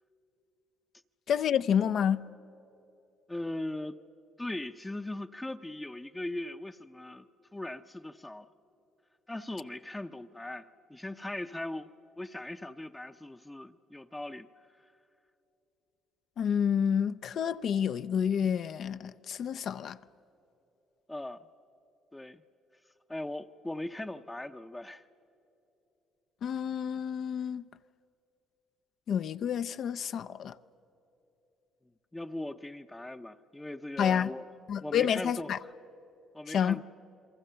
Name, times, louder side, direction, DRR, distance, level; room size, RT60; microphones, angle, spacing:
voice 1, 1.3-2.3 16.4-20.0 26.4-27.6 29.1-30.5 34.0-34.3 34.7-35.6 36.5-36.8, left 8 dB, 60° left, 0.5 m, -29 dB
voice 2, 3.3-4.0 4.4-8.5 9.3-11.9 12.2-14.5 21.1-21.5 22.1-22.4 23.1-25.1 32.1-34.5 34.8-35.6 36.3-36.8, left 1 dB, 10° left, 0.6 m, -39 dB
29.0 x 22.0 x 6.8 m
cardioid pair, 90°, 0 cm